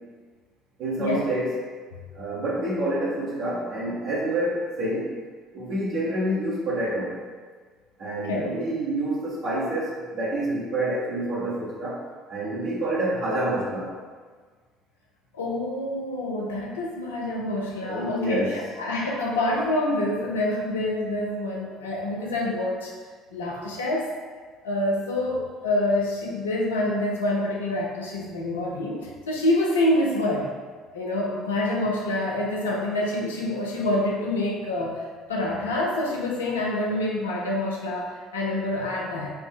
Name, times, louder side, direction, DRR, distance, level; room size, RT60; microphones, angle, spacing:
voice 1, 0.8-1.6 2.1-5.2 5.5-7.2 8.0-12.0 12.3-13.9 17.8-18.6, right 1 dB, 60° right, -8 dB, 1.2 m, -27 dB
voice 2, 15.3-22.9 23.3-24.1 24.6-30.5 30.9-39.3, left 1 dB, 85° left, -2 dB, 0.6 m, -27 dB
5.3 x 2.1 x 3.6 m, 1.5 s
hypercardioid pair, 60°, 0 cm